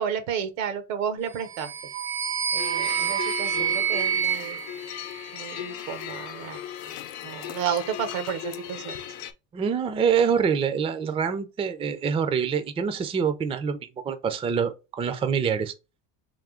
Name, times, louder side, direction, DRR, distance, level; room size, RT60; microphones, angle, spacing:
voice 1, 0.0-1.7 2.5-4.6 5.3-6.6 7.2-9.0, right 8 dB, 90° right, 1.0 m, -31 dB
sound 1, 1.4-5.7, right 8 dB, 70° right, 1.0 m, -28 dB
sound 2, 2.6-9.3, left 11 dB, 65° left, 0.7 m, -37 dB
voice 2, 9.5-15.7, right 6 dB, 15° right, 0.4 m, -25 dB
3.6 x 2.7 x 3.6 m
supercardioid pair, 115°, 40 cm